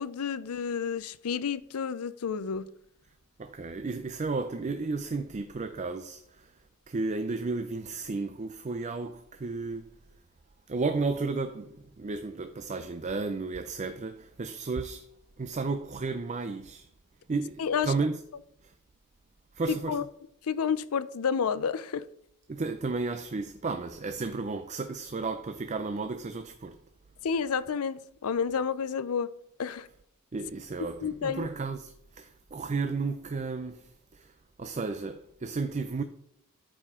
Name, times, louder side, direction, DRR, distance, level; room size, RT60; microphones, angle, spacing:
voice 1, 0.0-2.7 17.6-17.9 19.9-20.0 20.5-22.1 27.2-29.3 29.6-29.9 31.0-31.5, left 6 dB, 80° left, 0.5 m, -30 dB
voice 2, 3.4-6.6 6.9-9.9 10.7-15.1 15.4-16.9 17.3-18.2 18.6-18.7 19.5-20.0 22.5-26.8 30.3-36.0, right 3 dB, 35° right, 0.5 m, -33 dB
13.0 x 5.1 x 3.7 m
head